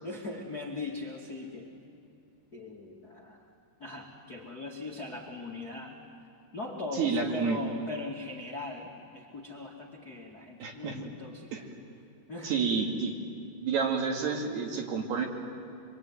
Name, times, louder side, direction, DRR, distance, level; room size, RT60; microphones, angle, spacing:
voice 1, 0.0-1.7 2.5-3.5 3.8-6.0 6.5-11.6 12.3-12.5, left 2 dB, 35° left, -2 dB, 1.5 m, -40 dB
voice 2, 6.9-7.6 10.6-11.0 11.5-11.7 12.4-13.1 13.6-15.3, right 5 dB, 60° right, 1 dB, 4.1 m, -29 dB
25.5 x 24.5 x 9.5 m, 2.8 s
omnidirectional pair, 5.6 m